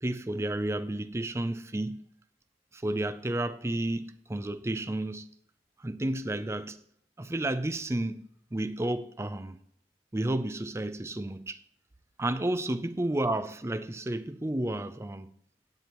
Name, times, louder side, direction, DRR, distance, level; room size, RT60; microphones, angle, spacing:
voice 1, 0.0-2.0 2.7-5.3 5.8-6.8 7.2-9.6 10.1-11.6 12.2-15.3, right 1 dB, 15° right, 0.5 m, -31 dB
13.5 x 9.3 x 3.0 m
head